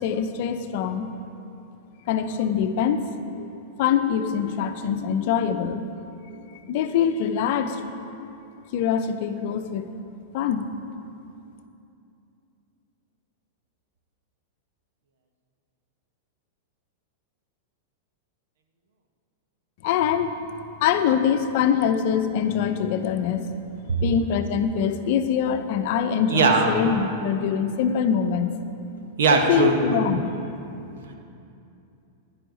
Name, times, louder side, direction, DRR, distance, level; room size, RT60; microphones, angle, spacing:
voice 1, 0.0-1.1 2.1-3.5 3.8-5.9 6.3-7.8 8.2-8.3 8.7-9.9 10.3-10.7 19.8-20.4 20.8-23.5 24.0-28.5 29.5-30.4, left 8 dB, 60° left, 8 dB, 0.6 m, -24 dB
voice 2, 26.3-26.7 29.2-30.0 31.1-31.2, right 4 dB, 75° right, 4 dB, 1.2 m, -20 dB
10.5 x 10.0 x 4.0 m, 2.7 s
hypercardioid pair, 115°, 0 cm